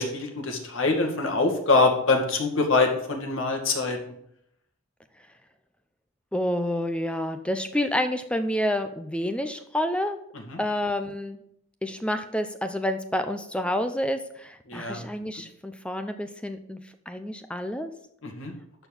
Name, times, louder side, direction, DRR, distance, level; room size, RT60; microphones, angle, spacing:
voice 1, 0.0-4.0 10.5-10.6 14.7-15.0 18.2-18.5, left 3 dB, 70° left, 3 dB, 2.2 m, -24 dB
voice 2, 6.3-10.2 10.6-11.4 11.8-16.8 17.1-17.9, left 1 dB, 5° left, 8 dB, 0.6 m, -29 dB
12.5 x 4.6 x 7.2 m, 0.72 s
head